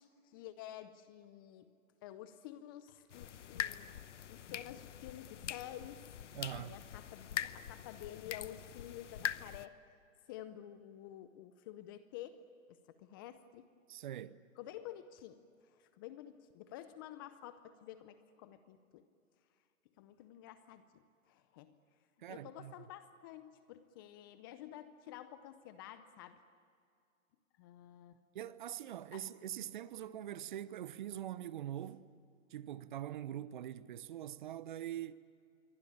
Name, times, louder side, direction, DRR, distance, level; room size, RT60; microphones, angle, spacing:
voice 1, 0.0-1.7 2.0-4.0 4.3-6.1 6.5-9.7 10.3-12.4 12.7-13.7 14.6-19.0 20.0-21.7 22.3-26.4 27.6-28.2 29.1-29.2, left 12 dB, 15° left, 0.6 m, -50 dB
sound 1, 3.1-9.7, left 10 dB, 60° left, 1.0 m, -43 dB
voice 2, 6.3-6.8 13.9-14.4 22.2-22.7 28.3-32.0 32.5-35.1, right 11 dB, 35° right, 0.8 m, -43 dB
27.0 x 23.5 x 8.7 m
hypercardioid pair, 140°, 40 cm